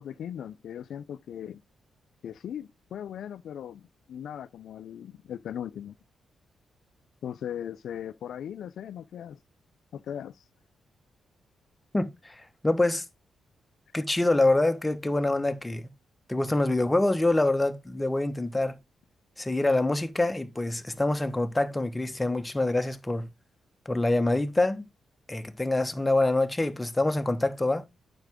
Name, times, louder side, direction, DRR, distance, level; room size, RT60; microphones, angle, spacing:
voice 1, 0.0-1.6 2.2-3.8 4.1-5.9 7.2-9.4 9.9-10.4, left 9 dB, 75° left, 0.4 m, -38 dB
voice 2, 11.9-13.0 13.9-15.8 16.3-18.8 19.4-23.3 23.8-24.9 25.3-27.8, left 2 dB, 15° left, 1.1 m, -25 dB
9.0 x 5.9 x 3.6 m
cardioid pair, 80°, 0 cm